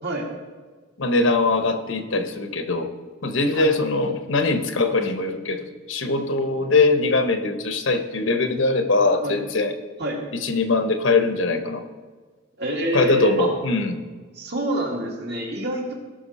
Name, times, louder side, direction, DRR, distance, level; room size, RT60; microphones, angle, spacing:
voice 1, 1.0-2.9 3.2-9.7 10.4-11.8 12.9-14.0, left 3 dB, 70° left, 7 dB, 1.0 m, -22 dB
voice 2, 12.6-13.5 14.3-15.9, right 1 dB, 50° right, -1 dB, 2.2 m, -26 dB
18.0 x 6.0 x 4.2 m, 1.4 s
head